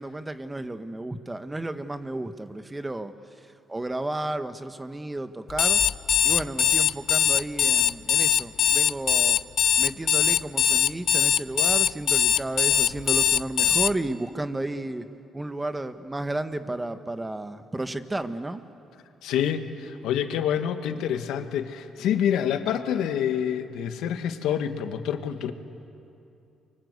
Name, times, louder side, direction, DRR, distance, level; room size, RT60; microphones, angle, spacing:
voice 1, 0.0-3.1 3.7-5.8 6.2-9.4 9.8-15.1 15.3-18.6, right 2 dB, 15° right, 9 dB, 1.5 m, -32 dB
Alarm, 5.5-13.9, left 9 dB, 65° left, 0.7 m, -21 dB
voice 2, 19.2-25.5, left 9 dB, 90° left, 8 dB, 1.6 m, -27 dB
29.5 x 24.5 x 8.3 m, 2.7 s
cardioid pair, 90°, 0 cm